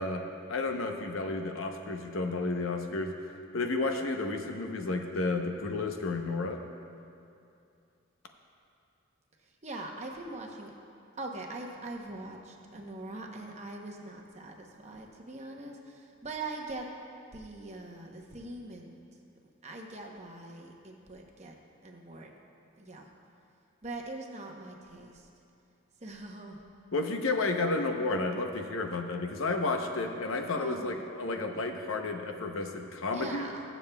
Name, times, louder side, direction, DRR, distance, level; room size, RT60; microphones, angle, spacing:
voice 1, 0.0-3.1 3.5-6.6 26.9-33.5, left 3 dB, 80° left, 4 dB, 0.8 m, -32 dB
voice 2, 9.4-10.7 11.2-16.9 17.3-19.0 19.6-21.5 21.8-22.3 22.8-23.1 23.8-25.3 26.0-26.6 30.5-31.0 33.1-33.6, right 2 dB, 30° right, 1 dB, 0.8 m, -42 dB
21.5 x 7.2 x 2.3 m, 2.6 s
head